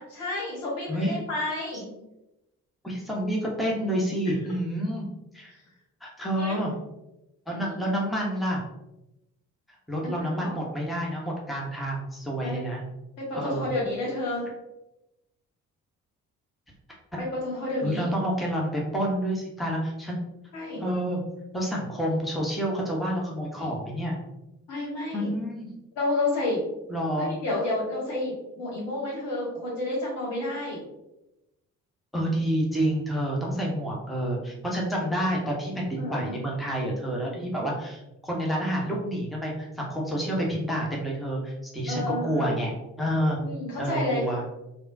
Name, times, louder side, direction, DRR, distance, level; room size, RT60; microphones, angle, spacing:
voice 1, 0.0-1.9 6.3-6.6 7.6-7.7 10.0-10.5 12.4-12.6 13.2-14.5 17.2-18.1 20.5-20.8 24.7-25.3 26.0-26.6 27.2-30.8 36.0-36.4 41.9-42.5 43.4-44.3, left 2 dB, 70° left, -5 dB, 1.3 m, -30 dB
voice 2, 2.8-5.1 5.3-5.5 6.0-6.7 7.5-8.6 9.9-12.8 13.3-13.7 17.8-20.2 20.8-21.2 21.5-24.2 25.1-25.7 26.9-27.3 32.1-42.7 43.0-43.4 43.8-44.4, equal, ahead, -2 dB, 0.9 m, -28 dB
3.5 x 2.3 x 2.6 m, 0.91 s
figure-of-eight pair, 45°, 43 cm